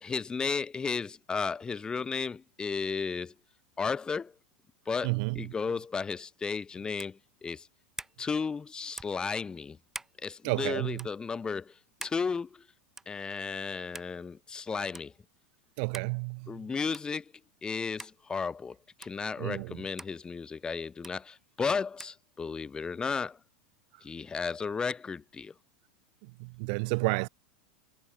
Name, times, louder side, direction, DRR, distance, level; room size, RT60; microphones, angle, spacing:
voice 1, 0.0-3.3 3.8-4.3 4.9-7.7 8.2-9.8 10.2-11.7 12.0-12.6 13.1-15.1 16.5-17.2 17.6-23.4 24.0-25.5, left 5 dB, 15° left, 1.5 m, -34 dB
voice 2, 5.0-5.5 10.4-11.1 15.8-16.7 19.4-19.8 26.2-27.3, right 33 dB, 60° right, 6.5 m, -31 dB
sound 1, 7.0-7.2 8.0-8.2 9.0-9.2 9.9-10.2 10.9-11.1 12.0-12.2 13.0-13.2 13.9-14.1 14.9-15.1 15.9-16.1 16.9-17.1 18.0-18.2 19.0-19.2 20.0-20.2 21.0-21.2 22.0-22.2, right 2 dB, 10° right, 3.1 m, -43 dB
supercardioid pair, 130°, 5 cm